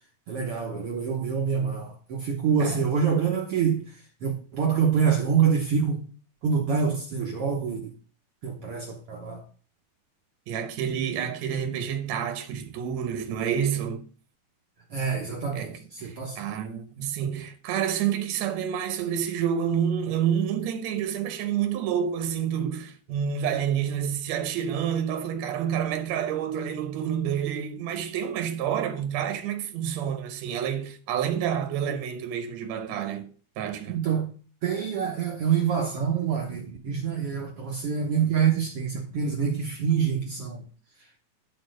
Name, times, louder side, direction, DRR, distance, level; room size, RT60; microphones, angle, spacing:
voice 1, 0.3-3.8 4.2-6.0 6.4-7.9 8.4-9.4 14.9-16.4 33.9-34.3 34.6-40.6, right 7 dB, 85° right, 1.2 m, -26 dB
voice 2, 10.5-14.1 15.5-33.3 33.6-34.0, right 8 dB, 65° right, 1.9 m, -28 dB
10.5 x 4.3 x 6.4 m
omnidirectional pair, 4.2 m